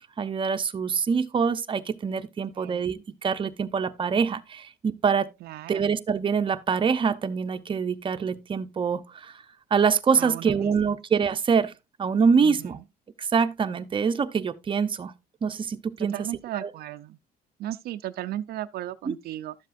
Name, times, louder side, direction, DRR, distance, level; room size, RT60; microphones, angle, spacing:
voice 1, 0.0-5.3 5.7-9.3 9.7-11.7 12.0-12.8 13.2-15.1 15.4-16.1 16.6-16.7 19.1-19.2, right 6 dB, 30° right, 0.7 m, -25 dB
voice 2, 5.4-5.9 10.2-10.7 12.4-12.6 16.0-17.2 17.6-19.5, right 13 dB, 65° right, 0.5 m, -35 dB
12.0 x 7.4 x 2.5 m
cardioid pair, 110°, 17 cm